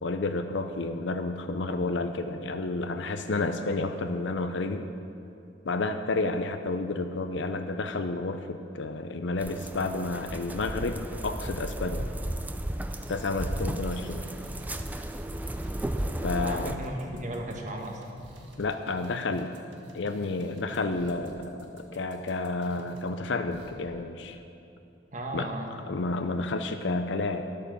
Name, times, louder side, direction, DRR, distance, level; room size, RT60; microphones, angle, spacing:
voice 1, 0.0-4.9 5.6-12.0 13.1-14.2 16.2-16.7 18.6-19.5 19.9-24.4 25.3-25.5 25.9-27.4, left 3 dB, 75° left, 7 dB, 0.6 m, -30 dB
sound 1, 9.4-16.7, right 1 dB, 10° right, 0.4 m, -34 dB
sound 2, 12.7-23.1 23.5-23.7, right 1 dB, 80° right, 1.5 m, -50 dB
voice 2, 16.4-18.0 25.1-25.7, right 1 dB, 40° right, 1 dB, 1.5 m, -35 dB
11.0 x 8.5 x 6.9 m, 2.7 s
head